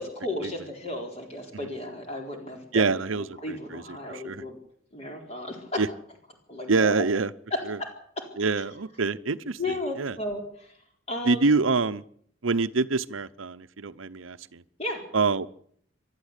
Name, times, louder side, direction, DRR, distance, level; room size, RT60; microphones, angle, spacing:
voice 1, 0.0-2.8 3.4-4.6 4.9-5.8 6.5-7.0 7.5-7.9 8.4-8.5 9.6-10.4 11.1-11.4 14.8-15.0, left 1 dB, 30° left, 2 dB, 4.3 m, -33 dB
voice 2, 2.7-4.4 5.8-5.9 6.7-7.3 7.6-7.8 8.4-10.2 11.2-12.0 12.4-14.6 15.1-15.5, right 4 dB, 85° right, 14 dB, 0.8 m, -26 dB
27.5 x 12.5 x 8.3 m, 0.66 s
head